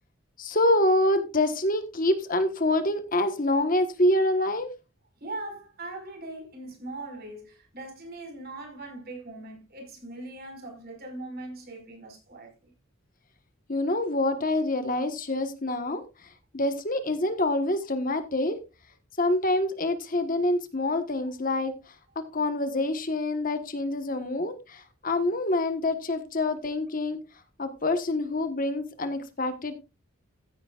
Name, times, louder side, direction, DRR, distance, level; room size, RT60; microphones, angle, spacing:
voice 1, 0.4-4.7 13.7-16.0 16.5-18.6 19.2-21.7 22.1-27.2 27.6-29.8, left 1 dB, 40° left, 1.3 m, -26 dB
voice 2, 5.2-12.7, right 2 dB, 45° right, 5.2 m, -40 dB
15.0 x 9.9 x 2.4 m
head